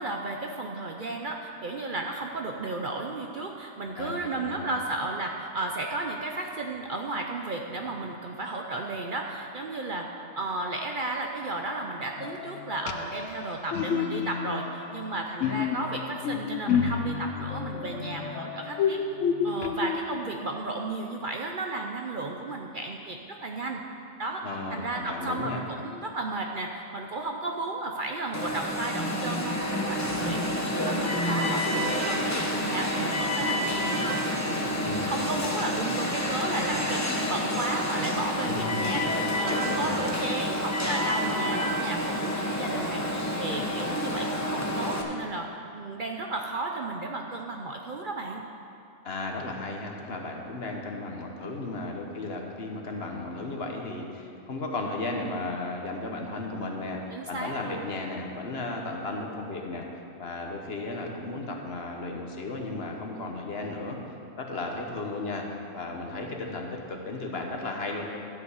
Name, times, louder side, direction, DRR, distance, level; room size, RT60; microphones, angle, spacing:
voice 1, 0.0-10.1 10.4-19.0 19.4-23.8 24.2-24.4 24.7-37.0 37.3-45.5 45.7-48.4 57.1-57.9, right 2 dB, 50° right, 1 dB, 0.7 m, -34 dB
voice 2, 3.9-4.7 24.4-25.6 34.8-35.1 38.5-39.0 39.5-40.0 49.0-57.0 57.3-59.9 60.2-64.0 64.4-65.4 65.7-68.1, left 2 dB, 55° left, 1 dB, 1.3 m, -35 dB
sound 1, 12.2-20.6, left 7 dB, 75° left, 0.9 m, -30 dB
Alarm, 28.3-45.0, left 1 dB, 15° left, 0.9 m, -29 dB
12.0 x 5.2 x 8.2 m, 2.6 s
omnidirectional pair, 1.3 m